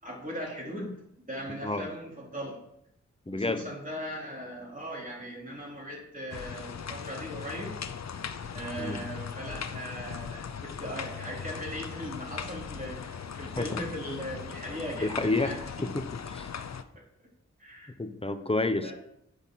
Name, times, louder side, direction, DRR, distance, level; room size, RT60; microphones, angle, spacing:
voice 1, 0.0-2.6 3.3-7.8 8.5-15.6 17.6-17.9 18.8-18.9, equal, 30° right, -3 dB, 3.8 m, -39 dB
voice 2, 3.3-3.6 8.8-9.0 13.5-13.8 15.0-15.5 15.8-16.5 18.0-18.9, left 2 dB, 20° left, 9 dB, 0.9 m, -30 dB
sound 1, 6.3-16.8, left 7 dB, 65° left, 0.7 m, -39 dB
8.2 x 5.4 x 5.9 m, 0.77 s
cardioid pair, 55°, 29 cm